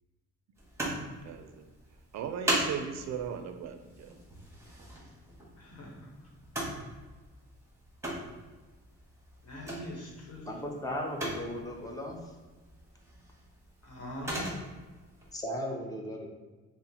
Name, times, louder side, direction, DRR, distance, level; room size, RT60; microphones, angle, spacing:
sound 1, 0.5-15.4, right 1 dB, 10° right, 1.4 m, -40 dB
voice 1, 1.2-1.6 2.1-4.1, right 7 dB, 65° right, 7 dB, 0.4 m, -37 dB
voice 2, 5.6-6.3 9.4-10.5 13.8-14.6, equal, 55° left, -2 dB, 1.1 m, -42 dB
voice 3, 10.5-12.2 15.3-16.3, equal, 10° left, -1 dB, 0.8 m, -36 dB
5.5 x 2.1 x 2.8 m, 1.3 s
cardioid pair, 90°, 30 cm